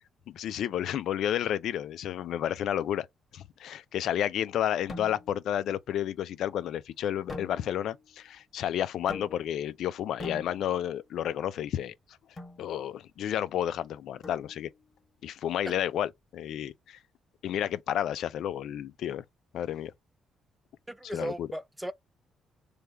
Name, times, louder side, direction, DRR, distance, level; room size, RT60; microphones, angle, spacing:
voice 1, 0.3-3.1 3.3-11.9 12.6-14.7 15.2-17.0 17.4-19.2 19.5-19.9 21.1-21.5, left 10 dB, 75° left, 0.4 m, -31 dB
sound 1, 4.9-5.5 7.3-8.0 9.1-9.7 10.2-11.0 12.4-12.7 14.2-14.8, left 2 dB, 30° left, 1.8 m, -43 dB
voice 2, 20.9-21.9, right 1 dB, 5° right, 0.4 m, -37 dB
3.3 x 2.3 x 4.4 m
cardioid pair, 90°, 0 cm